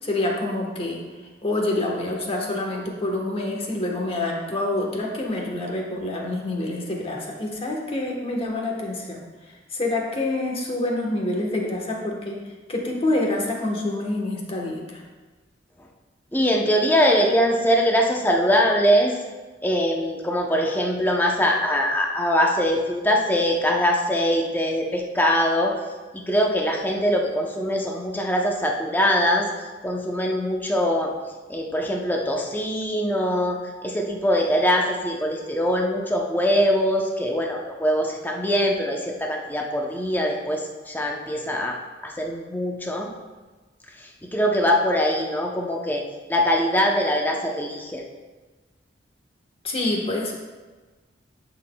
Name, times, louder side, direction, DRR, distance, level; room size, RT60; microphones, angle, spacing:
voice 1, 0.0-1.0 1.4-9.2 9.5-12.4 12.7-15.0 49.6-50.3, left 2 dB, 30° left, 0 dB, 1.2 m, -27 dB
voice 2, 16.3-19.2 19.6-25.7 26.1-29.5 29.8-31.1 31.5-41.8 42.0-43.1 44.3-46.0 46.3-48.0, equal, 10° left, 0 dB, 0.7 m, -22 dB
11.0 x 6.1 x 2.3 m, 1.3 s
head